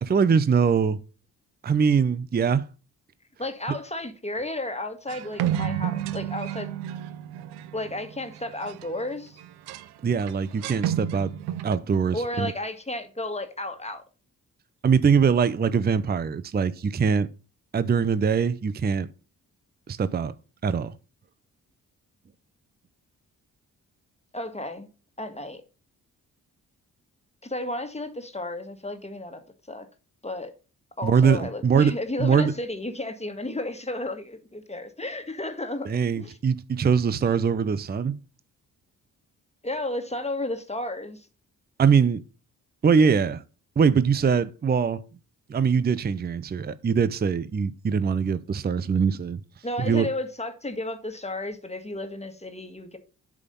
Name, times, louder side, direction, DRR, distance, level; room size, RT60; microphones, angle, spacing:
voice 1, 0.0-1.0 1.6-2.7 10.0-11.3 11.6-12.5 14.8-17.3 17.7-19.1 19.9-20.3 20.6-20.9 31.0-32.5 35.9-38.2 41.8-42.2 42.8-43.4 43.8-45.0 45.5-49.4 49.8-50.1, right 6 dB, 25° right, 0.5 m, -22 dB
voice 2, 3.4-6.7 7.7-9.4 12.1-14.0 24.3-24.9 25.2-25.6 27.4-29.9 30.2-30.5 31.0-36.4 39.6-41.3 49.6-53.0, left 1 dB, 15° left, 1.6 m, -33 dB
sound 1, 5.1-9.0 9.4-9.9 10.2-11.8, right 11 dB, 85° right, 0.5 m, -31 dB
8.3 x 3.5 x 5.3 m
supercardioid pair, 40°, 39 cm